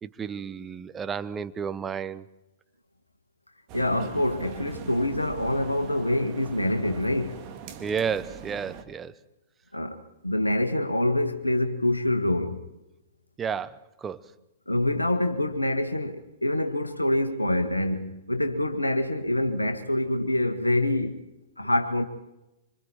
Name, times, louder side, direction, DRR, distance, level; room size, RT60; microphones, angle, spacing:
voice 1, 0.0-2.3 7.8-9.2 13.4-14.3, right 7 dB, 15° right, 0.9 m, -32 dB
voice 2, 3.7-7.4 9.7-12.6 14.7-21.2 21.6-22.0, left 1 dB, 85° left, 1.6 m, -26 dB
sound 1, 3.7-8.8, right 8 dB, 35° right, 2.4 m, -41 dB
26.5 x 26.0 x 4.4 m
figure-of-eight pair, 105°, 0 cm